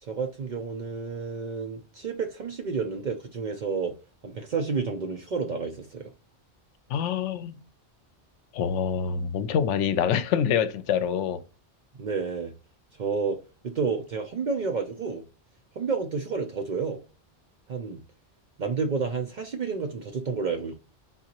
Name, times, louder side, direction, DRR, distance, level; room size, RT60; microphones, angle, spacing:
voice 1, 0.0-3.9 4.2-6.1 11.9-12.5 13.0-13.4 13.6-15.2 15.8-17.0 17.7-18.0 18.6-20.8, right 5 dB, 55° right, 0.5 m, -30 dB
voice 2, 6.9-7.6 8.5-11.4, left 8 dB, 80° left, 0.9 m, -26 dB
4.0 x 3.7 x 2.9 m
omnidirectional pair, 1.2 m